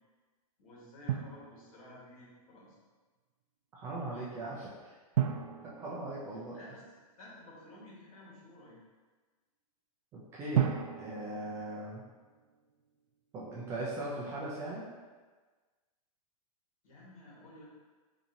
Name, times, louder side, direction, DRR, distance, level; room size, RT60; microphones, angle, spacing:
voice 1, 0.6-2.8 6.5-6.8 7.2-8.8 16.8-17.6, left 1 dB, 65° left, -5 dB, 1.5 m, -53 dB
Drum, 1.1-2.2 5.1-7.0 10.5-12.5, right 10 dB, 80° right, 0.4 m, -35 dB
voice 2, 3.7-5.0 5.6-6.5 10.1-12.0 13.3-14.8, right 1 dB, 15° right, -6 dB, 0.3 m, -39 dB
4.2 x 2.7 x 2.6 m, 1.4 s
hypercardioid pair, 160°, 19 cm